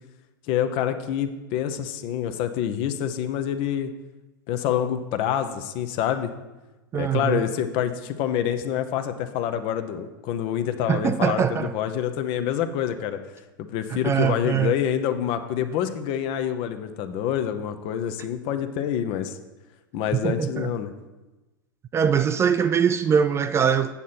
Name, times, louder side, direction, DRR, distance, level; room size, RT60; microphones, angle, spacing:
voice 1, 0.5-3.9 4.5-6.3 6.9-13.2 13.6-19.4 19.9-20.9, left 9 dB, 50° left, 0.8 m, -27 dB
voice 2, 6.9-7.4 10.9-11.7 13.9-14.8 20.1-20.7 21.9-23.9, right 7 dB, 25° right, 0.4 m, -22 dB
8.4 x 7.4 x 4.1 m
hypercardioid pair, 90°, 12 cm